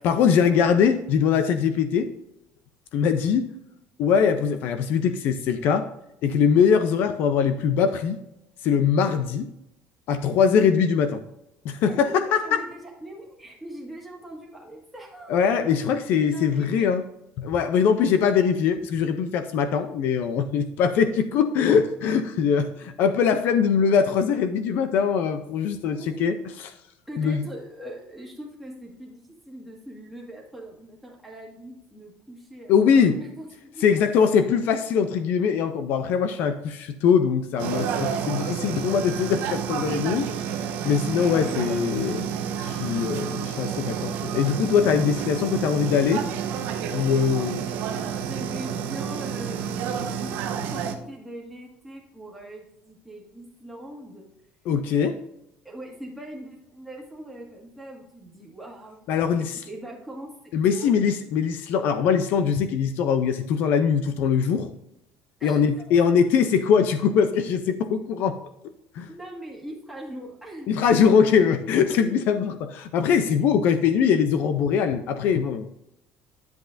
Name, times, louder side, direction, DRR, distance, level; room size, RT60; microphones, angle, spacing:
voice 1, 0.0-2.1 2.9-3.5 4.0-5.9 6.2-8.2 8.6-9.5 10.1-11.2 11.6-12.6 15.3-17.0 17.4-26.3 27.2-27.4 32.7-33.1 33.8-40.3 40.8-42.3 42.6-46.3 46.9-47.7 54.7-55.2 59.1-59.6 60.5-64.7 65.4-68.4 68.9-69.1 70.7-75.7, left 7 dB, 55° left, 9 dB, 0.5 m, -22 dB
voice 2, 11.9-15.4 16.1-17.0 17.8-18.1 25.9-26.3 27.1-33.8 34.4-34.5 41.2-41.6 47.2-54.3 55.6-59.0 59.4-60.9 65.4-66.0 69.1-70.7 71.0-71.2 71.9-72.2 73.4-73.5, right 1 dB, ahead, -3 dB, 1.8 m, -41 dB
sound 1, 37.6-50.9, right 8 dB, 60° right, 1.0 m, -30 dB
10.5 x 7.8 x 2.6 m, 0.85 s
cardioid pair, 170°, 4 cm